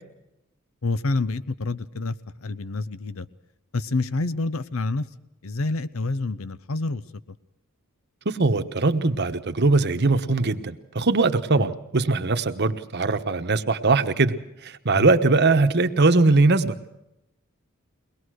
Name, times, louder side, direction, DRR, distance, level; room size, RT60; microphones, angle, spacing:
voice 1, 0.8-3.3 3.7-5.0 5.4-7.0 11.6-11.7 14.9-15.1, left 3 dB, 70° left, 16 dB, 0.8 m, -28 dB
voice 2, 8.2-14.4 14.6-16.8, right 3 dB, 50° right, 8 dB, 1.1 m, -21 dB
23.0 x 19.5 x 6.4 m, 0.87 s
head